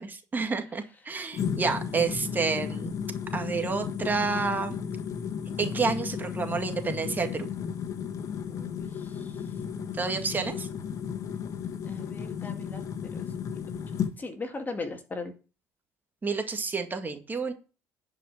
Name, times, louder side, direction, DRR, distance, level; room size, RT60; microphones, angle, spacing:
voice 1, 0.0-2.9 3.3-4.8 5.6-7.5 10.0-10.7 16.2-17.5, right 4 dB, 25° right, 5 dB, 1.9 m, -29 dB
sound 1, 1.3-14.1, left 7 dB, 50° left, 1.5 m, -34 dB
voice 2, 8.5-8.9 11.9-12.8 13.1-13.2 14.2-15.3, left 3 dB, 25° left, 5 dB, 1.9 m, -37 dB
10.5 x 5.1 x 6.5 m, 0.35 s
supercardioid pair, 80°, 7 cm